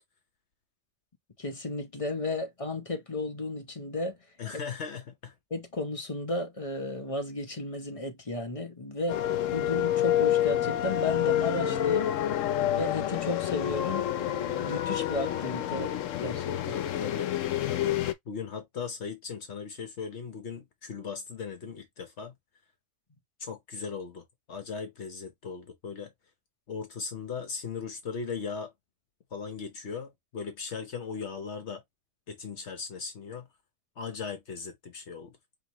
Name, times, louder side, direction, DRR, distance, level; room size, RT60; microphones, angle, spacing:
voice 1, 1.4-4.2 5.5-12.1 12.7-16.7, left 2 dB, 30° left, 1.0 m, -34 dB
voice 2, 4.4-5.3 16.7-17.3 17.7-18.0 18.3-22.3 23.4-26.1 26.7-28.7 29.3-31.8 32.3-33.5 34.0-35.3, left 5 dB, 65° left, 1.2 m, -38 dB
sound 1, 9.1-18.1, left 11 dB, 90° left, 1.0 m, -28 dB
5.0 x 2.9 x 3.0 m
omnidirectional pair, 1.3 m